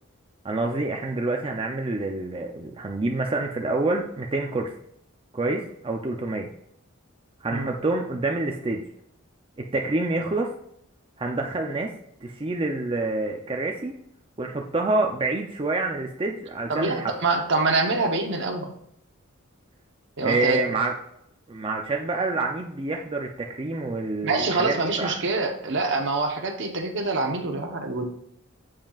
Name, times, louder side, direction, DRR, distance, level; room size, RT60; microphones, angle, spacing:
voice 1, 0.4-4.7 5.3-6.5 7.4-8.8 9.6-10.5 11.2-11.9 12.2-13.9 14.4-17.1 20.2-20.9 21.5-25.1, right 2 dB, 25° right, 1 dB, 0.5 m, -27 dB
voice 2, 16.7-18.7 20.2-20.8 24.2-28.1, right 3 dB, 60° right, 4 dB, 1.0 m, -25 dB
7.7 x 7.2 x 2.4 m, 0.73 s
head